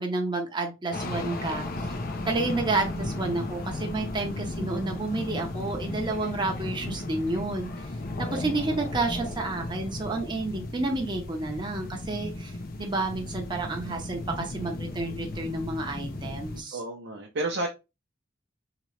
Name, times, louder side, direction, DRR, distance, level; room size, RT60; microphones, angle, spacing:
voice 1, 0.0-1.9 2.3-7.7 8.3-16.8, right 2 dB, 25° right, 0.7 m, -30 dB
sound 1, 0.9-16.6, left 2 dB, 50° left, 0.6 m, -35 dB
voice 2, 4.2-4.5 8.3-8.5 16.7-17.7, right 2 dB, 65° right, 0.6 m, -32 dB
2.9 x 2.9 x 3.1 m
head